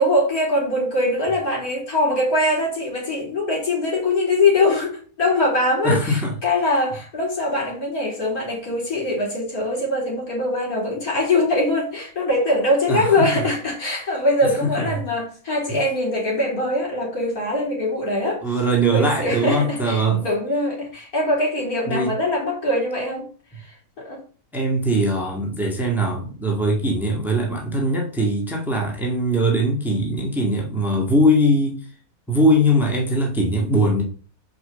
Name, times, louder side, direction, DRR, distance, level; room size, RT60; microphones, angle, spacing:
voice 1, 0.0-18.4 18.9-23.3 23.6-24.2, left 1 dB, 65° left, 4.0 m, -22 dB
voice 2, 5.8-6.3 12.9-13.3 14.6-15.0 15.7-15.8 18.4-20.2 21.9-22.1 24.5-31.8 32.3-34.0, right 1 dB, ahead, 1.9 m, -21 dB
6.2 x 5.3 x 6.9 m
omnidirectional pair, 1.7 m